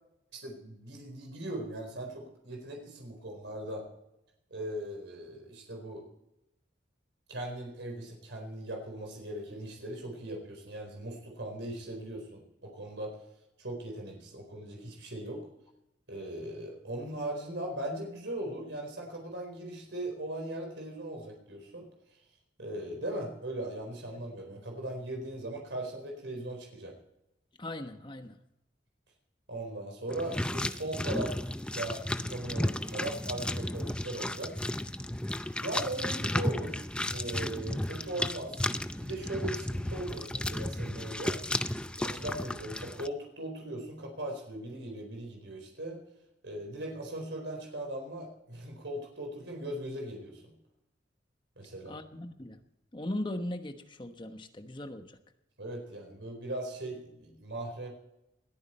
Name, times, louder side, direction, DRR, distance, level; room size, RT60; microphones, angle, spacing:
voice 1, 0.3-3.9 4.5-6.1 7.3-13.2 13.6-15.4 16.1-21.9 22.6-26.9 29.5-31.4 31.7-34.6 35.6-36.8 37.1-41.4 41.9-46.0 46.4-50.5 51.6-52.0 55.6-57.9, right 1 dB, 85° right, 2 dB, 4.3 m, -39 dB
voice 2, 27.6-28.4 51.9-52.6 52.9-55.2, left 1 dB, 25° left, 7 dB, 1.2 m, -38 dB
sound 1, 30.1-43.1, left 1 dB, 5° left, 0.5 m, -34 dB
21.0 x 14.0 x 4.4 m, 0.86 s
head